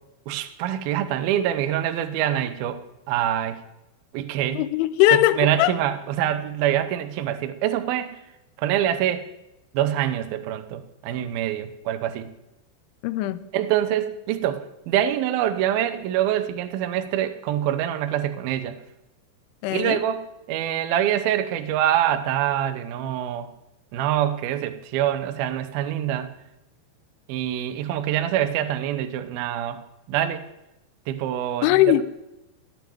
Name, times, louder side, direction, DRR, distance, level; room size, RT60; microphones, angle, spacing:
voice 1, 0.3-2.8 3.1-3.6 4.1-4.6 5.4-8.2 8.6-9.2 9.7-12.3 13.5-18.7 19.7-23.5 23.9-26.3 27.3-29.8 30.1-30.5 31.1-32.0, right 11 dB, 80° right, 2.2 m, -25 dB
voice 2, 4.5-5.8 13.0-13.4 19.6-20.0 31.6-32.0, left 15 dB, 85° left, 3.1 m, -20 dB
16.5 x 7.2 x 9.2 m
omnidirectional pair, 5.5 m